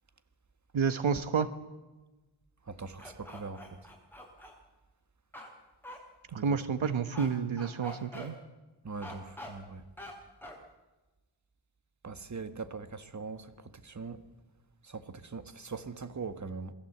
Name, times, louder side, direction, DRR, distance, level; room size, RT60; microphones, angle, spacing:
voice 1, 0.7-1.5 6.3-8.4, right 6 dB, 75° right, 1.3 m, -30 dB
voice 2, 2.7-3.6 6.3-6.6 8.8-9.8 12.0-13.5 13.8-14.2 14.9-16.7, right 4 dB, 35° right, 1.6 m, -41 dB
sound 1, 3.0-4.5 5.3-5.5 5.8-6.0 7.1-7.3 7.6-8.3 9.0-9.5 10.0-10.1 10.4-10.6, left 1 dB, 5° left, 7.6 m, -45 dB
27.5 x 21.5 x 8.0 m
wide cardioid pair, 95°, 47 cm